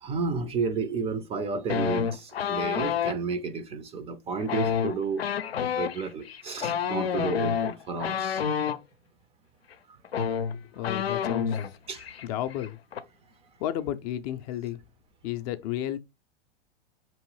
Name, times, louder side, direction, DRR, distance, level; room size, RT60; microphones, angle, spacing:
voice 1, 0.0-5.2 5.6-8.4 11.9-12.0, right 5 dB, 20° right, 0.4 m, -32 dB
sound 1, 1.7-3.2 4.4-8.8 9.7-9.8 10.0-11.7 12.0-12.3 12.5-13.0, left 7 dB, 90° left, 0.6 m, -28 dB
voice 2, 10.8-11.6 12.2-12.8 13.6-14.8 15.2-16.0, left 12 dB, 40° left, 0.4 m, -32 dB
4.4 x 3.0 x 3.0 m
hypercardioid pair, 110°, 30 cm